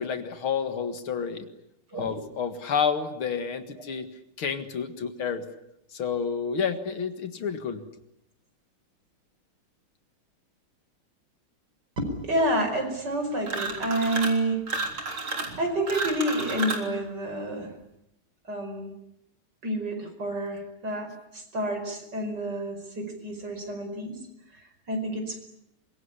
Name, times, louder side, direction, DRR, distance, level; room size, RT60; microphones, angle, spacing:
voice 1, 0.0-1.5 1.9-4.1 4.4-5.4 5.9-7.8, left 6 dB, 75° left, 9 dB, 2.7 m, -29 dB
voice 2, 12.0-14.7 15.6-17.7 18.5-18.9 19.6-24.2 24.5-25.4, right 1 dB, 50° right, 5 dB, 5.6 m, -29 dB
sound 1, 13.4-14.4 14.7-16.9, right 3 dB, 75° right, 4.5 m, -31 dB
25.0 x 22.5 x 9.9 m, 0.80 s
omnidirectional pair, 2.3 m